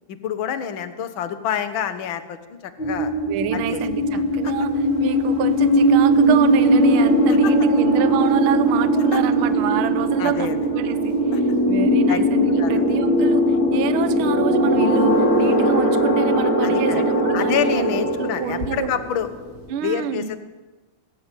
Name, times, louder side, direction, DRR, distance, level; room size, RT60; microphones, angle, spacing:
voice 1, 0.1-3.1 3.5-3.8 4.1-4.5 7.3-7.5 8.9-9.2 10.2-10.6 11.3-11.4 12.1-12.2 12.6-12.9 13.5-13.6 16.6-17.0 17.3-19.3 19.8-20.4, left 9 dB, 55° left, 9 dB, 1.5 m, -28 dB
sound 1, 2.8-19.7, right 1 dB, 35° left, 3.3 m, -19 dB
voice 2, 3.3-4.7 5.0-11.2 11.7-17.9 18.2-18.9 19.7-20.4, right 9 dB, 65° right, 11 dB, 1.3 m, -27 dB
20.0 x 14.5 x 9.2 m, 1.2 s
omnidirectional pair, 3.8 m